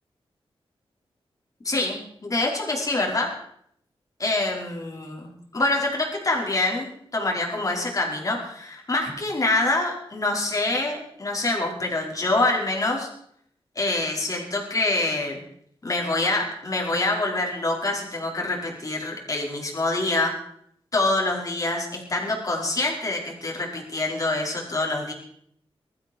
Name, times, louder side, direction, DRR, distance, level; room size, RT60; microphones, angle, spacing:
voice 1, 1.6-3.3 4.2-13.1 13.8-15.4 15.8-20.3 20.9-25.1, left 2 dB, 35° left, 0 dB, 5.3 m, -26 dB
20.5 x 14.5 x 4.7 m, 0.66 s
wide cardioid pair, 115°, 10 cm